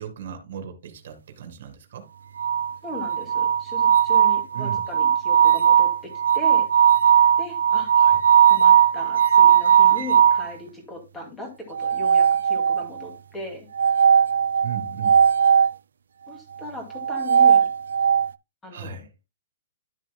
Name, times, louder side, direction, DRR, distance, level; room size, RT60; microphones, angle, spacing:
voice 1, 0.0-2.1 4.5-4.8 7.9-8.2 14.6-15.2 18.7-19.1, right 8 dB, 45° right, 2.1 m, -36 dB
sound 1, 2.4-10.5 11.7-13.0 13.8-15.7 16.9-18.3, right 8 dB, 80° right, 0.5 m, -18 dB
voice 2, 2.8-6.7 7.4-7.9 8.5-13.7 16.3-17.7 18.6-19.0, left 2 dB, 5° left, 2.3 m, -38 dB
12.0 x 7.3 x 2.2 m
hypercardioid pair, 180°, 0 cm